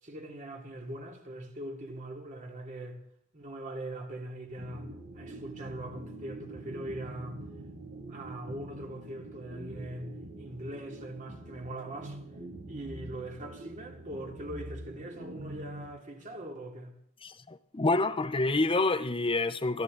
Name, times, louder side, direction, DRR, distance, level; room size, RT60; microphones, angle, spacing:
voice 1, 0.0-3.0 3.3-4.9 5.1-7.4 8.1-12.2 12.7-17.0, right 1 dB, 40° right, 2.8 m, -41 dB
sound 1, 4.5-16.4, right 1 dB, 60° right, 7.7 m, -45 dB
voice 2, 17.2-19.8, left 2 dB, 25° left, 0.8 m, -28 dB
22.0 x 14.0 x 4.0 m
head